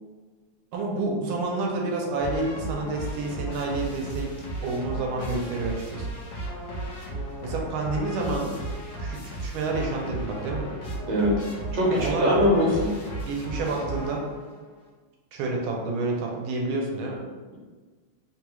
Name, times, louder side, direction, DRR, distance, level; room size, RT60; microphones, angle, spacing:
voice 1, 0.7-4.3 4.6-6.1 7.4-8.5 9.0-10.7 11.8-12.5 13.2-14.2 15.3-17.2, right 3 dB, 80° right, -1 dB, 1.5 m, -29 dB
sound 1, 2.2-14.6, right 1 dB, 70° left, 0.7 m, -35 dB
voice 2, 11.7-12.9, left 1 dB, 65° right, -4 dB, 1.4 m, -22 dB
3.6 x 2.3 x 3.0 m, 1.4 s
omnidirectional pair, 2.3 m